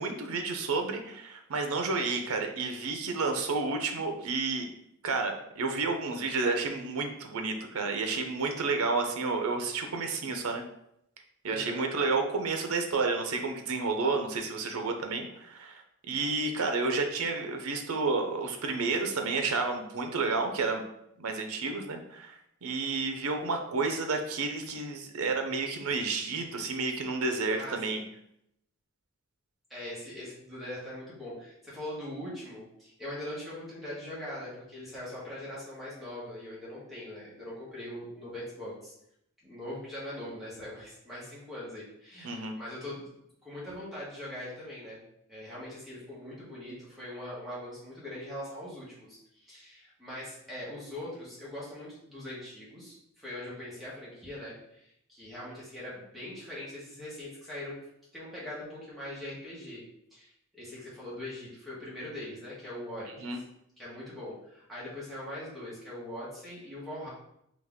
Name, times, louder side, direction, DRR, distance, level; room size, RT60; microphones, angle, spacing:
voice 1, 0.0-4.7 5.0-10.6 11.4-20.8 21.2-22.4 22.6-28.0 42.2-42.5 63.2-63.4, right 3 dB, 80° right, 5 dB, 0.6 m, -31 dB
voice 2, 11.5-11.8 27.5-28.0 29.7-38.9 39.4-43.1 43.4-45.0 45.3-57.8 58.1-59.8 60.1-63.4 63.8-67.1, left 1 dB, ahead, -9 dB, 1.3 m, -41 dB
4.0 x 2.8 x 3.5 m, 0.77 s
head